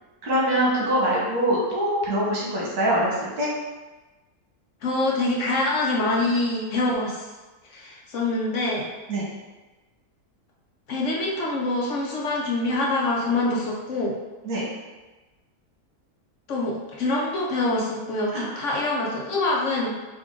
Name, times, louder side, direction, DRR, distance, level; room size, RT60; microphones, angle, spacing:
voice 1, 0.2-3.5 9.1-9.3 14.4-14.6 18.3-18.6, right 1 dB, 85° right, -4 dB, 1.7 m, -23 dB
voice 2, 4.8-7.2 7.7-8.8 10.9-14.2 16.5-19.9, left 2 dB, 60° left, -3 dB, 1.0 m, -25 dB
5.3 x 2.6 x 3.6 m, 1.2 s
omnidirectional pair, 1.6 m